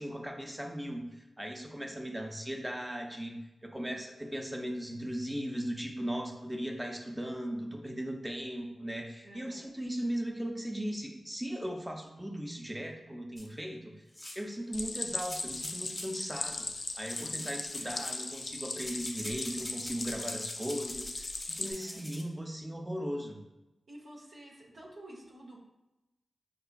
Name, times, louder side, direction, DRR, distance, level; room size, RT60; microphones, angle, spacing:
voice 1, 0.0-3.4 3.6-13.9 14.4-16.7 17.0-23.4, equal, 15° right, 2 dB, 0.6 m, -38 dB
voice 2, 9.2-9.7 17.1-17.7 21.6-22.0 23.0-23.2 23.9-25.6, right 1 dB, 75° right, -4 dB, 0.7 m, -51 dB
sound 1, 13.4-13.5 14.1-14.5 15.2-16.2 17.0-18.5 18.8-22.2, left 1 dB, 20° left, 0.8 m, -44 dB
Stream, 14.7-21.7, left 3 dB, 60° left, 0.3 m, -38 dB
4.9 x 2.3 x 2.3 m, 1.0 s
cardioid pair, 40°, 0 cm